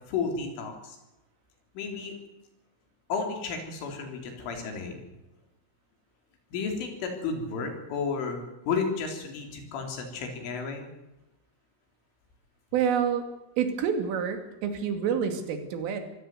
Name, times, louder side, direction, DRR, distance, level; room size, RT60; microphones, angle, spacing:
voice 1, 0.1-1.0 1.8-2.2 3.1-5.0 6.5-10.9, left 5 dB, 80° left, 4 dB, 6.2 m, -32 dB
voice 2, 12.7-13.3 13.6-16.0, right 7 dB, 85° right, 7 dB, 5.0 m, -28 dB
23.5 x 16.5 x 8.0 m, 0.97 s
omnidirectional pair, 5.6 m